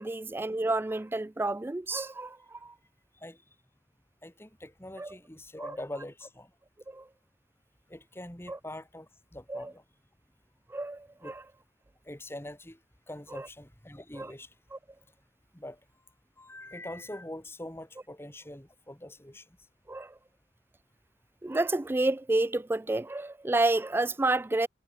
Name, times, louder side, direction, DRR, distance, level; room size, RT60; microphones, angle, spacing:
voice 1, 0.0-2.7 5.0-5.2 5.6-5.8 6.9-7.1 8.5-8.6 9.5-9.7 10.7-11.4 13.3-13.5 14.2-14.3 14.7-14.8 19.9-20.1 21.4-24.7, right 2 dB, 10° right, 0.3 m, -30 dB
voice 2, 4.2-6.5 7.9-9.8 11.2-11.3 12.1-12.8 13.1-14.5 15.5-15.8 16.4-19.4, left 1 dB, 15° left, 2.1 m, -43 dB
head